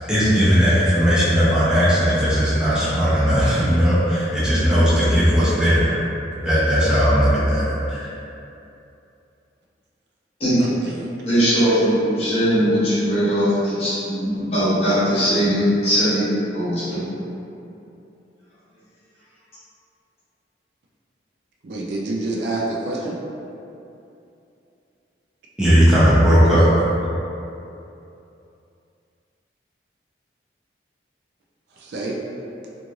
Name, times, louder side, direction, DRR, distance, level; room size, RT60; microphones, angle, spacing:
voice 1, 0.0-6.0 6.4-8.1 25.6-26.7, equal, 5° right, -10 dB, 0.6 m, -17 dB
voice 2, 11.2-17.0, equal, 35° left, -11 dB, 0.9 m, -20 dB
voice 3, 21.6-23.2 31.8-32.2, right 2 dB, 65° right, -2 dB, 0.4 m, -27 dB
3.0 x 2.5 x 2.4 m, 2.7 s
head